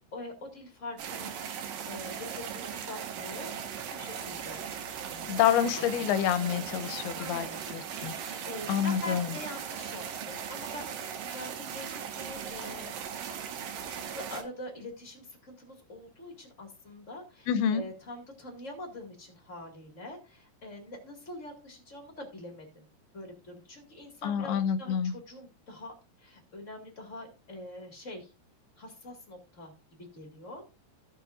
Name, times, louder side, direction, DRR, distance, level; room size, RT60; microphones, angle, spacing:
voice 1, 0.1-3.5 3.9-4.6 5.1-5.4 5.7-6.0 7.1-12.9 13.9-22.8 23.1-28.3 28.8-30.6, left 1 dB, 30° left, 1.6 m, -44 dB
sound 1, 1.0-14.4, right 8 dB, 65° right, 2.6 m, -38 dB
voice 2, 5.3-8.4 8.7-9.3 17.5-17.8 24.2-25.1, left 9 dB, 80° left, 2.5 m, -28 dB
16.0 x 6.9 x 2.6 m
omnidirectional pair, 4.7 m